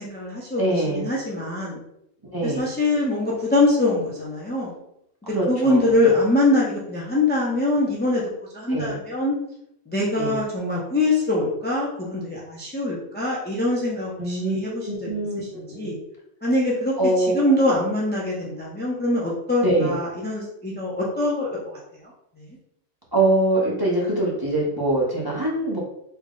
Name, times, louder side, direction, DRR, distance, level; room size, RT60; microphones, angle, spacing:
voice 1, 0.0-0.6 0.9-1.8 2.4-4.7 5.2-8.2 8.5-9.4 9.9-16.0 16.4-16.9 17.3-21.6 22.0-22.1 22.4-22.6, left 2 dB, 15° left, -5 dB, 0.4 m, -23 dB
voice 2, 0.6-1.1 2.3-2.7 5.3-6.0 8.7-9.0 10.1-10.4 14.2-15.9 17.0-17.8 19.6-19.9 23.1-25.8, right 1 dB, 25° right, -5 dB, 0.7 m, -24 dB
3.5 x 2.1 x 3.6 m, 0.78 s
omnidirectional pair, 1.2 m